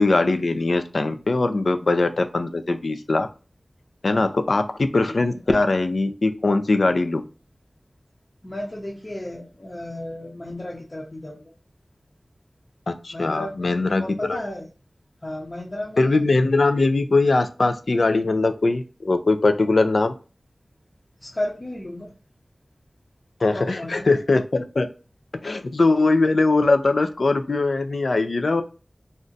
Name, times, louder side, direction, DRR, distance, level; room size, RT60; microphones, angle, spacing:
voice 1, 0.0-3.3 4.0-7.2 12.9-14.0 14.3-14.4 16.0-20.1 23.4-24.9 25.3-28.6, left 3 dB, 75° left, 8 dB, 0.4 m, -21 dB
voice 2, 5.0-5.4 8.4-11.4 13.1-14.7 15.2-16.2 21.2-22.1 23.5-24.1, left 1 dB, 35° left, -4 dB, 0.7 m, -34 dB
2.5 x 2.1 x 3.8 m, 0.34 s
wide cardioid pair, 55°, 0 cm